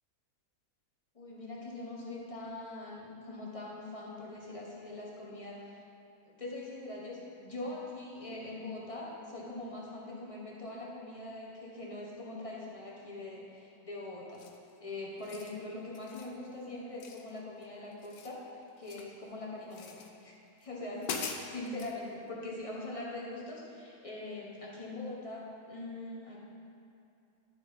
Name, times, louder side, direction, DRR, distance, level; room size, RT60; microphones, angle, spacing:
voice 1, 1.1-5.8 6.3-14.4 14.8-18.4 18.8-26.4, left 2 dB, 25° left, -4 dB, 1.3 m, -42 dB
sound 1, 14.3-14.7 15.1-15.6 15.9-16.3 17.0-17.7 17.9-19.2 19.7-20.1 20.6-20.7 21.0-22.0, left 6 dB, 80° left, 1.2 m, -42 dB
11.5 x 4.5 x 5.2 m, 2.7 s
omnidirectional pair, 1.6 m